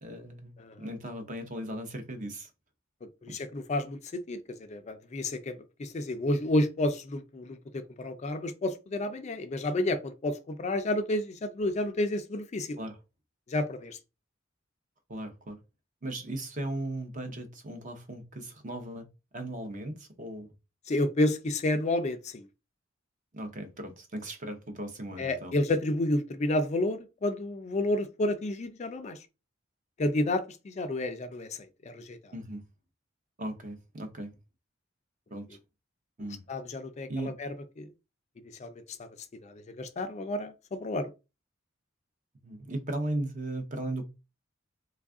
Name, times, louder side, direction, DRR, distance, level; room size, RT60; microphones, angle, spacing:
voice 1, 0.0-2.5 3.3-3.4 12.8-13.0 15.1-15.6 16.0-19.1 19.3-20.5 23.3-25.5 32.3-32.6 33.4-34.4 35.3-35.6 36.2-36.4 37.1-37.4 42.4-44.0, right 1 dB, 40° right, 0.7 m, -37 dB
voice 2, 3.2-12.8 13.5-14.0 20.9-22.5 25.2-29.2 30.0-31.5 31.9-32.2 36.5-37.5 37.8-37.9 38.6-38.7 39.4-41.1, left 1 dB, 35° left, 0.4 m, -30 dB
3.3 x 2.4 x 3.6 m
head